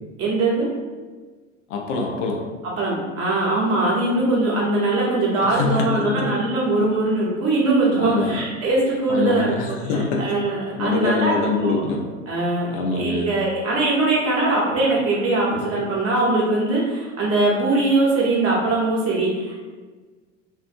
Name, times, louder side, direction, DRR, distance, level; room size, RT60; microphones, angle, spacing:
voice 1, 0.2-0.7 2.8-9.7 10.2-11.8 12.3-19.6, right 2 dB, 40° right, -5 dB, 1.1 m, -21 dB
voice 2, 1.7-2.4 5.4-6.3 8.0-8.4 9.1-10.4 10.7-12.1 12.7-13.3, left 4 dB, 70° left, 1 dB, 0.6 m, -24 dB
2.7 x 2.5 x 2.5 m, 1.4 s
hypercardioid pair, 75°, 38 cm